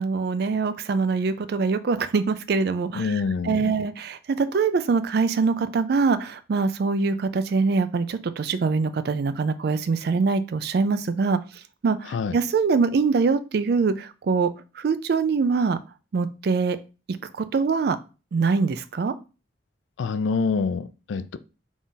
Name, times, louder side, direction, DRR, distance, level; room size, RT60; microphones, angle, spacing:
voice 1, 0.0-11.4 11.8-15.8 16.1-16.8 17.4-18.0 18.3-19.1, right 4 dB, 55° right, 0.3 m, -23 dB
voice 2, 2.9-3.8 12.1-12.4 20.0-21.4, left 5 dB, 75° left, 0.3 m, -26 dB
4.0 x 2.4 x 3.8 m
head